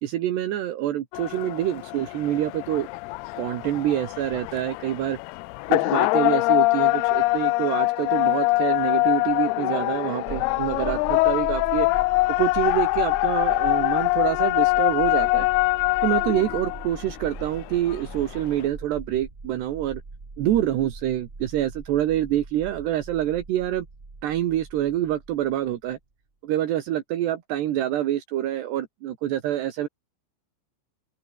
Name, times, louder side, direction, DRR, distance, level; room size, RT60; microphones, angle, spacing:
voice 1, 0.0-2.9 3.4-5.2 5.7-11.9 12.4-15.5 16.0-20.0 20.4-23.9 24.2-26.0 26.4-29.9, right 12 dB, 75° right, 3.8 m, -26 dB
sound 1, 1.1-18.7, left 23 dB, 85° left, 2.2 m, -24 dB
sound 2, 10.3-26.0, right 3 dB, 20° right, 2.1 m, -41 dB
open air
omnidirectional pair, 5.1 m